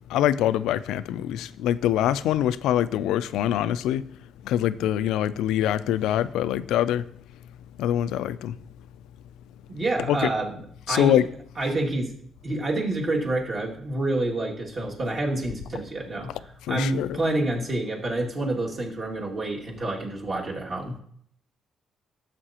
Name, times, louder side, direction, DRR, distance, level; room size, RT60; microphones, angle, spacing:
voice 1, 0.1-4.0 4.4-7.1 7.8-8.6 10.1-10.3 10.9-11.3 16.7-17.2, left 11 dB, 90° left, 0.3 m, -24 dB
voice 2, 9.7-10.6 10.9-11.2 11.6-12.2 12.4-21.0, right 2 dB, 40° right, 2.3 m, -28 dB
12.5 x 7.5 x 2.9 m
cardioid pair, 90°, 0 cm